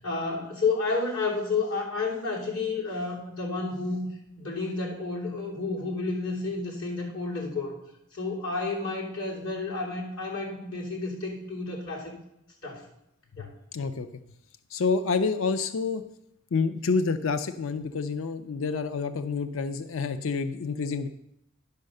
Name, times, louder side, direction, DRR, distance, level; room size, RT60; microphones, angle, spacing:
voice 1, 0.0-4.0 4.4-7.7 8.1-12.1 12.6-12.9 13.4-13.5, left 3 dB, 90° left, -3 dB, 3.3 m, -31 dB
voice 2, 13.7-14.1 14.7-16.0 16.5-21.1, left 4 dB, 65° left, 11 dB, 0.5 m, -28 dB
10.5 x 5.5 x 6.5 m, 0.80 s
head